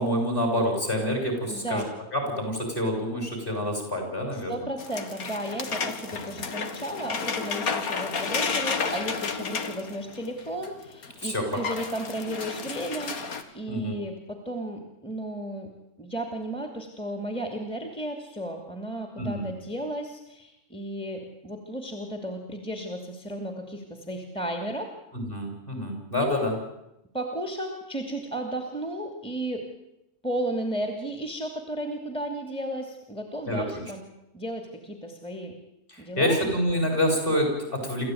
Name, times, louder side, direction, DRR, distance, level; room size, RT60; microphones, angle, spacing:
voice 1, 0.0-1.8 2.1-4.7 6.3-6.4 11.2-11.8 13.7-13.9 19.2-19.5 25.1-26.5 33.5-33.8 35.9-38.1, equal, 35° left, 3 dB, 7.1 m, -27 dB
voice 2, 1.5-1.9 4.3-15.7 16.0-24.9 26.2-26.5 27.1-29.7 30.2-34.0 34.3-35.6 36.0-36.4, right 1 dB, 5° left, 4 dB, 2.7 m, -34 dB
sound 1, 4.8-10.7 11.0-11.1 11.4-13.4, left 5 dB, 70° left, 2.2 m, -31 dB
27.0 x 14.5 x 9.4 m, 0.89 s
omnidirectional pair, 1.6 m